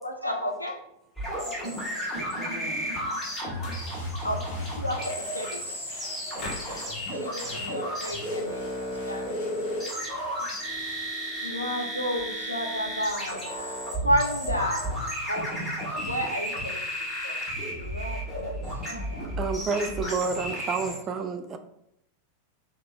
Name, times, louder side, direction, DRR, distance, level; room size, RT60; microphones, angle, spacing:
voice 1, 0.0-0.8 4.2-4.4 4.8-5.9 7.0-8.7 9.1-9.3 11.4-15.7 16.1-16.8 17.2-17.4 17.8-19.5, equal, 85° left, 0.4 m, -32 dB
voice 2, 1.1-1.5 1.8-4.2, left 1 dB, ahead, 1.1 m, -47 dB
sound 1, 1.2-21.0, equal, 20° left, 1.3 m, -33 dB
sound 2, 2.8-3.3 3.6-4.0 6.4-6.8, left 2 dB, 35° left, 0.7 m, -39 dB
sound 3, 3.7-11.0, left 1 dB, 65° left, 1.1 m, -48 dB
voice 3, 19.4-21.6, right 5 dB, 25° right, 0.3 m, -29 dB
3.4 x 2.8 x 2.4 m
figure-of-eight pair, 90°, 0 cm